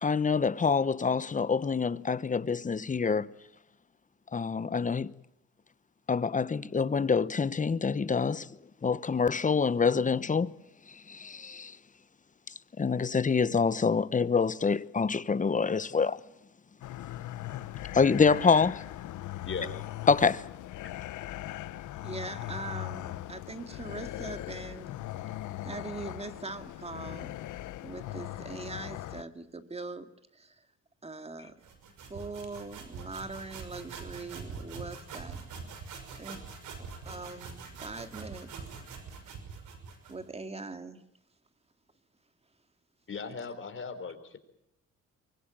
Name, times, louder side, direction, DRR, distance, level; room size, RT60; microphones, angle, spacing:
voice 1, 0.0-3.3 4.3-5.1 6.1-8.5 8.8-10.5 11.1-11.8 12.8-16.2 17.9-18.8 20.1-20.4, left 5 dB, 25° left, 0.9 m, -26 dB
sound 1, 16.8-29.2, left 14 dB, 80° left, 1.0 m, -39 dB
voice 2, 22.0-25.0 25.6-27.4 27.8-30.7 31.0-31.5 32.1-35.4 36.2-36.4 36.8-38.5 40.1-41.0, right 3 dB, 20° right, 2.1 m, -42 dB
sound 2, 31.6-40.2, right 5 dB, 80° right, 5.9 m, -44 dB
voice 3, 43.1-44.4, left 5 dB, 40° left, 4.0 m, -38 dB
24.0 x 21.5 x 8.9 m
cardioid pair, 90°, 30 cm